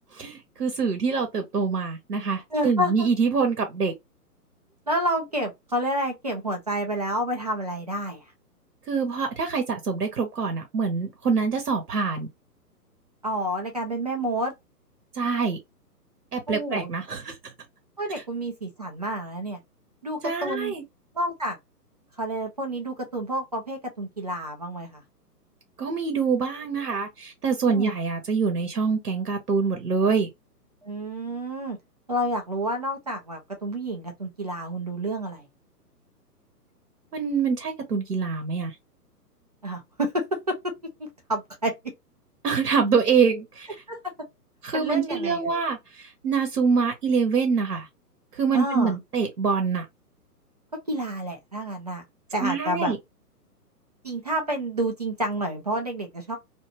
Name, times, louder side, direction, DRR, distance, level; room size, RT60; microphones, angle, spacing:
voice 1, 0.1-3.9 8.9-12.3 15.1-15.6 16.3-17.4 20.2-20.8 25.8-30.3 37.1-38.7 42.4-43.7 44.6-47.9 48.3-49.9 52.4-53.0, right 5 dB, 65° right, 0.9 m, -25 dB
voice 2, 2.5-3.1 4.9-8.2 13.2-14.5 16.5-16.9 18.0-19.6 20.0-20.7 21.1-21.6 22.2-25.0 27.7-27.9 30.8-31.8 32.1-35.5 39.6-40.7 41.0-41.7 43.9-44.1 44.7-45.6 48.5-49.0 50.9-52.0 52.3-52.9 54.0-56.4, right 1 dB, 25° right, 0.4 m, -29 dB
2.6 x 2.3 x 2.8 m
figure-of-eight pair, 125°, 49 cm